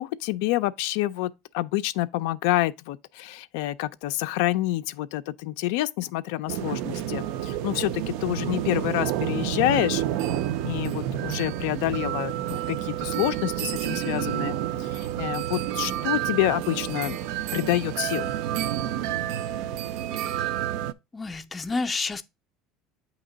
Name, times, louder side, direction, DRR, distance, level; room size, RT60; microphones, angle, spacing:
voice 1, 0.0-10.0 10.6-12.3 12.7-17.2 17.5-18.3, left 16 dB, 80° left, 0.3 m, -27 dB
sound 1, 6.5-20.9, right 12 dB, 70° right, 0.4 m, -29 dB
voice 2, 20.1-20.5 21.1-22.2, left 3 dB, 15° left, 0.4 m, -30 dB
8.5 x 2.9 x 3.8 m
cardioid pair, 145°, 0 cm